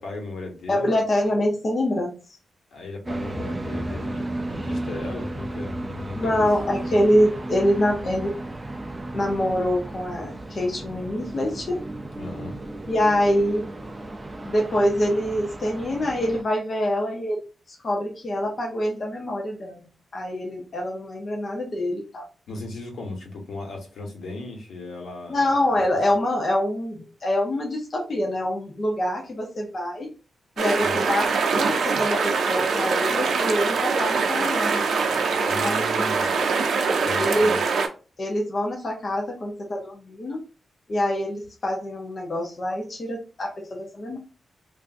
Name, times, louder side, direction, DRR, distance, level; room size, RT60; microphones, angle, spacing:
voice 1, 0.0-0.9 2.7-6.5 6.9-7.0 12.2-12.6 22.5-25.4 25.7-25.8 30.8-31.0 35.5-36.4 37.0-37.6, left 2 dB, 85° left, 1 dB, 1.1 m, -36 dB
voice 2, 0.7-2.1 6.1-8.4 9.1-11.8 12.9-13.7 14.4-17.4 17.8-22.3 25.3-30.1 30.6-31.3 31.5-34.8 35.6-36.4 37.2-37.5 38.2-40.4 40.9-44.2, left 1 dB, 40° left, 0 dB, 0.7 m, -25 dB
sound 1, 3.1-16.4, right 1 dB, 15° right, 0.4 m, -34 dB
sound 2, 30.6-37.9, right 5 dB, 85° right, 0.5 m, -23 dB
3.4 x 2.5 x 2.5 m, 0.33 s
wide cardioid pair, 170°, 0 cm